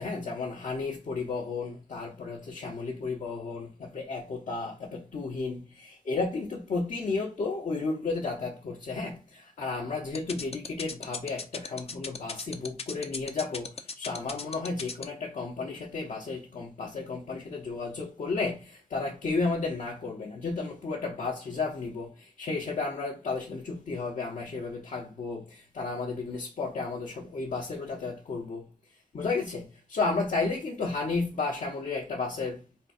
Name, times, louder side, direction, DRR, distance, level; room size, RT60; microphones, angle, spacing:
voice 1, 0.0-28.7 29.1-32.6, left 3 dB, 65° left, 1.0 m, -33 dB
sound 1, 10.2-15.0, left 5 dB, 50° left, 0.6 m, -36 dB
3.8 x 2.3 x 4.2 m
wide cardioid pair, 80°, 14 cm